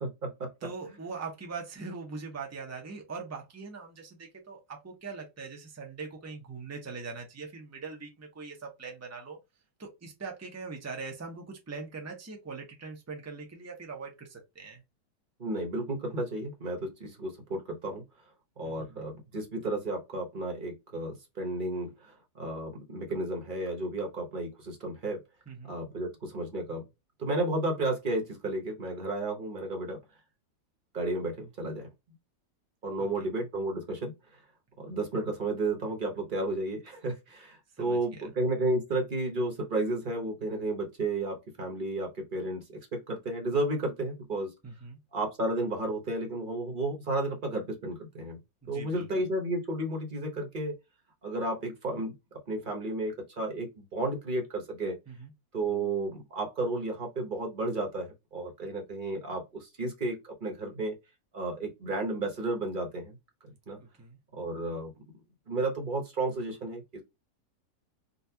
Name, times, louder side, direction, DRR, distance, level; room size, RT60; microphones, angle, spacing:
voice 1, 0.0-0.5 15.4-18.0 18.6-25.2 25.6-26.8 27.2-30.0 30.9-31.9 32.8-34.1 34.8-44.5 45.1-48.4 48.7-50.8 51.2-52.1 52.5-55.0 55.5-60.9 61.3-63.2 63.7-63.8 64.3-64.9 65.5-67.0, right 2 dB, 35° right, 0.9 m, -32 dB
voice 2, 0.6-9.4 9.8-14.8 18.6-18.9 25.5-25.7 33.0-33.3 37.8-38.3 44.6-45.0 48.6-49.2 55.1-55.3 63.8-64.2, right 4 dB, 20° right, 0.4 m, -42 dB
3.9 x 2.4 x 2.7 m
omnidirectional pair, 1.8 m